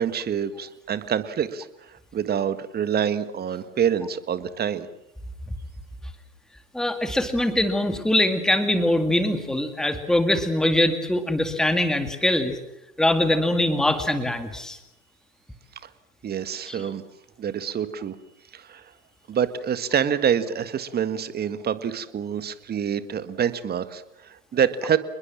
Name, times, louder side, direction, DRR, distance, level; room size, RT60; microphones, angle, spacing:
voice 1, 0.0-4.9 16.2-17.0 17.4-18.2 18.5-18.8 19.3-25.0, right 8 dB, 20° right, 13 dB, 1.7 m, -26 dB
voice 2, 6.7-12.5 13.0-14.8 16.7-16.8, left 1 dB, ahead, 8 dB, 2.2 m, -22 dB
28.5 x 21.5 x 7.5 m, 0.87 s
hypercardioid pair, 110°, 47 cm